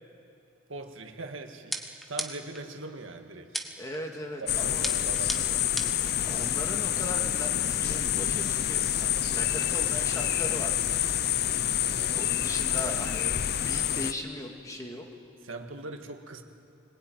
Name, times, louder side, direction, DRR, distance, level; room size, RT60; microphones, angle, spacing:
voice 1, 0.7-3.6 4.4-6.1 11.9-12.3 15.4-16.4, right 2 dB, 85° right, 4 dB, 1.8 m, -41 dB
sound 1, 1.7-2.6 3.5-4.0 4.8-6.1, right 1 dB, ahead, 1.1 m, -35 dB
voice 2, 3.8-4.9 6.3-10.8 12.1-15.1, left 1 dB, 15° left, 2 dB, 2.2 m, -38 dB
sound 2, 4.5-14.1, left 11 dB, 55° left, 0.6 m, -28 dB
24.5 x 20.5 x 9.2 m, 2.5 s
head